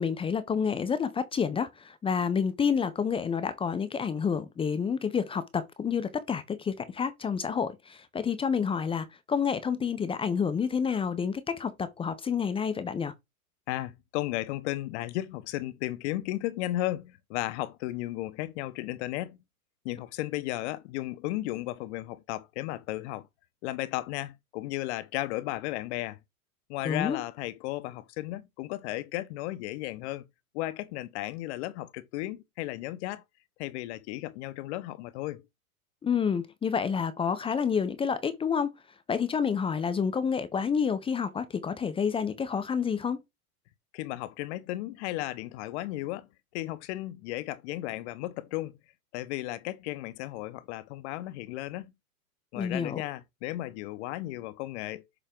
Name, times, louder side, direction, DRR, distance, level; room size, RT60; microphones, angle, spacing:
voice 1, 0.0-13.1 26.8-27.2 36.0-38.7 39.1-43.2 52.6-53.0, left 6 dB, 10° left, 0.6 m, -29 dB
voice 2, 13.7-19.4 19.8-23.3 23.6-26.2 26.7-30.2 30.5-33.2 33.6-35.4 43.9-46.3 46.5-48.8 49.1-51.9 52.5-55.0, left 16 dB, 50° left, 0.8 m, -34 dB
6.9 x 4.4 x 3.7 m
hypercardioid pair, 110°, 45 cm